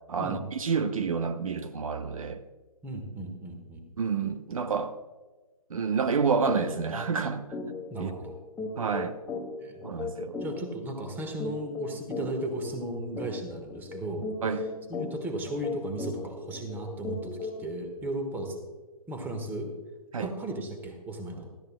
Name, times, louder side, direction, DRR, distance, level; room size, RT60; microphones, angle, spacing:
voice 1, 0.1-2.4 4.0-5.0 5.7-7.5 8.0-8.1 8.8-9.2 9.8-10.4 14.4-14.7 20.1-20.3, right 5 dB, 65° right, 0.8 m, -29 dB
voice 2, 2.8-3.8 7.9-8.4 9.6-9.8 10.4-14.3 14.5-14.6 14.9-18.6 19.1-19.7 20.1-21.5, right 1 dB, 10° right, 1.4 m, -35 dB
sound 1, 6.5-6.6 7.0-7.1 7.5-17.7, left 3 dB, 5° left, 1.7 m, -37 dB
17.5 x 13.0 x 2.2 m
figure-of-eight pair, 140°, 19 cm